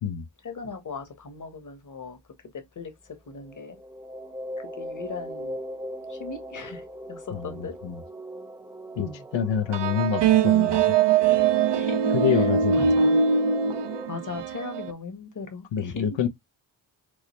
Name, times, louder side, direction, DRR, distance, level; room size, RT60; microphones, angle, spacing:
voice 1, 0.4-2.2 2.8-2.9 3.3-3.8 4.8-5.6 6.1-7.7 9.0-9.2 11.7-12.0 12.3-13.2 14.1-16.0, left 4 dB, 40° left, 1.2 m, -38 dB
sound 1, 3.4-14.1, right 1 dB, 5° right, 0.9 m, -39 dB
voice 2, 7.3-8.0 9.0-10.8 12.1-12.9 15.7-16.3, left 8 dB, 75° left, 0.7 m, -27 dB
sound 2, 9.7-14.9, right 6 dB, 65° right, 0.6 m, -22 dB
4.8 x 2.0 x 3.0 m
cardioid pair, 60°, 45 cm